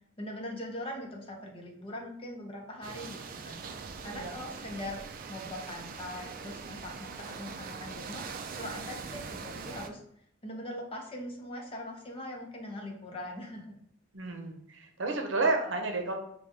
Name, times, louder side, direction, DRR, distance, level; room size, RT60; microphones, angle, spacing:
voice 1, 0.2-3.6 4.0-5.0 5.3-8.3 8.6-10.0 10.4-13.7, left 1 dB, 30° left, 0 dB, 0.8 m, -41 dB
sound 1, 2.8-9.9, right 5 dB, 50° right, 0.4 m, -42 dB
voice 2, 14.1-16.2, right 3 dB, 75° right, 3 dB, 0.7 m, -31 dB
4.8 x 2.3 x 2.7 m, 0.70 s
head